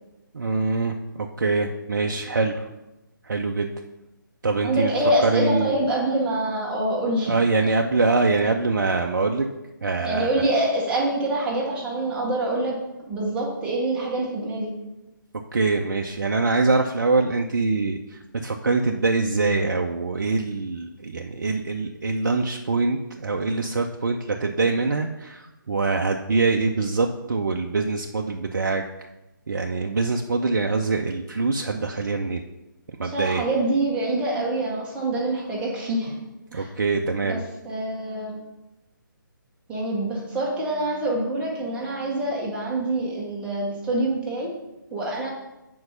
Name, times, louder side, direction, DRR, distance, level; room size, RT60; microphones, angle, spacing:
voice 1, 0.3-2.7 3.2-3.7 4.4-4.9 5.2-5.8 7.3-9.5 9.8-10.3 15.5-28.8 29.5-32.4 33.0-33.5 36.5-37.4, right 3 dB, 55° right, 3 dB, 0.6 m, -24 dB
voice 2, 4.6-7.3 7.6-7.7 10.0-12.8 13.1-14.7 33.0-36.1 36.5-36.7 37.3-37.4 37.6-38.4 39.7-44.5 44.9-45.3, right 1 dB, 10° right, -4 dB, 1.4 m, -25 dB
7.8 x 4.7 x 5.5 m, 0.98 s
figure-of-eight pair, 140°, 11 cm